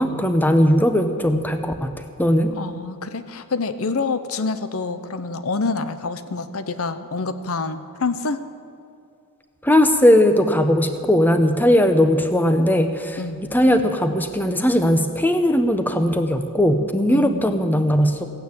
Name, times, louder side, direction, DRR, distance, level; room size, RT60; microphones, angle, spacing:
voice 1, 0.0-1.9 2.2-2.5 9.6-13.2 13.5-18.2, equal, 10° left, 7 dB, 0.8 m, -18 dB
voice 2, 2.6-8.4 13.2-13.5 17.1-17.5, left 4 dB, 70° left, 11 dB, 0.8 m, -27 dB
15.5 x 9.2 x 8.4 m, 2.5 s
head